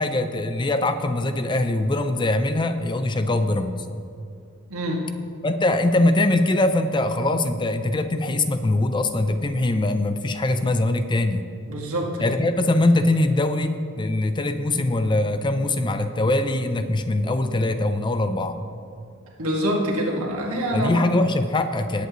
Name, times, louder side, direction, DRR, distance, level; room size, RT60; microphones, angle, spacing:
voice 1, 0.0-3.8 5.4-11.4 12.2-18.6 20.7-22.1, left 2 dB, 20° left, 9 dB, 0.5 m, -22 dB
voice 2, 4.7-5.1 11.7-12.4 19.4-21.1, equal, 85° right, -1 dB, 1.9 m, -25 dB
18.5 x 8.1 x 3.0 m, 2.5 s
head